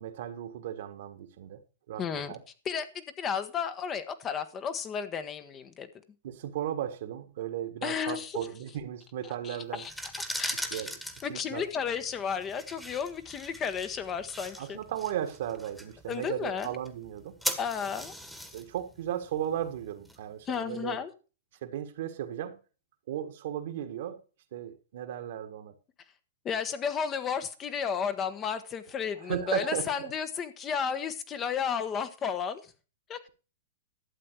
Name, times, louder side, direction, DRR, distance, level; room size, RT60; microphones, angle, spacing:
voice 1, 0.0-2.4 6.2-9.8 10.5-10.9 11.3-11.6 14.6-17.4 18.5-21.0 21.6-22.6 23.1-24.2 24.5-25.7 29.2-30.1, right 10 dB, 65° right, 1.6 m, -36 dB
voice 2, 2.0-2.4 2.6-5.9 7.8-8.4 9.4-9.9 10.4-10.9 11.2-14.8 16.1-16.7 17.6-18.1 20.4-21.1 26.4-32.7 33.1-33.3, left 7 dB, 25° left, 1.2 m, -33 dB
sound 1, 9.7-20.6, equal, 5° left, 1.6 m, -40 dB
12.0 x 7.8 x 4.7 m
hypercardioid pair, 120°, 0 cm